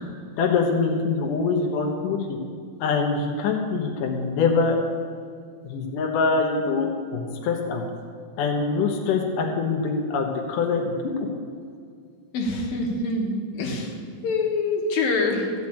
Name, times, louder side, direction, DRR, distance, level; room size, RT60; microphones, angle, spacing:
voice 1, 0.4-2.4 2.8-4.8 5.6-7.8 8.4-10.9, left 4 dB, 70° left, 1 dB, 2.6 m, -24 dB
voice 2, 12.3-13.9 14.2-15.5, left 3 dB, 90° left, 0 dB, 3.3 m, -25 dB
14.0 x 6.2 x 8.6 m, 2.2 s
omnidirectional pair, 4.0 m